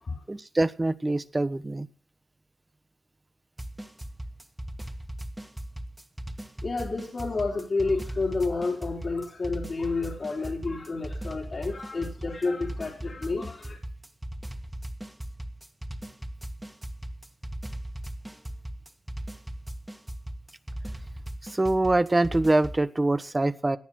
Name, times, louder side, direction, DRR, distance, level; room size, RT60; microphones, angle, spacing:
voice 1, 0.3-1.9 21.4-23.8, right 2 dB, 30° right, 11 dB, 1.3 m, -24 dB
sound 1, 3.6-22.8, right 1 dB, 15° right, 2.2 m, -38 dB
voice 2, 6.6-13.8, left 3 dB, 60° left, -1 dB, 3.5 m, -30 dB
18.0 x 9.8 x 6.2 m, 0.40 s
cardioid pair, 40°, 0 cm